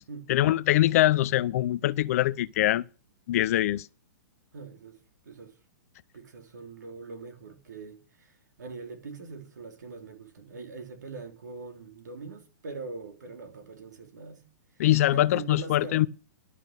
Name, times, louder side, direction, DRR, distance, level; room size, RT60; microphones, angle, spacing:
voice 1, 0.3-2.8 3.3-3.9 14.8-16.1, left 14 dB, 55° left, 0.6 m, -23 dB
voice 2, 4.5-5.0 5.2-5.6 6.1-14.4 14.7-16.0, right 4 dB, 75° right, 3.5 m, -42 dB
12.5 x 6.0 x 8.3 m
hypercardioid pair, 120°, 10 cm